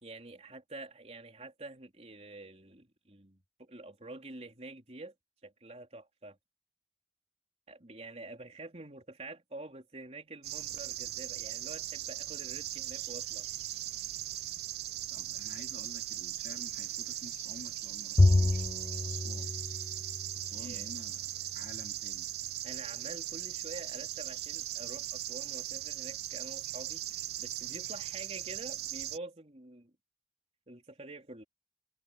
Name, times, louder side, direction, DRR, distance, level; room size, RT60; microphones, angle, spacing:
voice 1, 0.0-5.1 5.4-6.4 7.7-13.5 20.5-20.9 22.6-29.9 30.7-31.4, right 2 dB, 35° right, 3.7 m, -47 dB
sound 1, 10.4-29.2, right 14 dB, 60° right, 0.5 m, -39 dB
voice 2, 15.1-18.7 19.0-19.5 20.3-22.3, left 2 dB, 50° left, 2.8 m, -51 dB
Bowed string instrument, 18.2-20.7, left 2 dB, 20° left, 0.4 m, -28 dB
head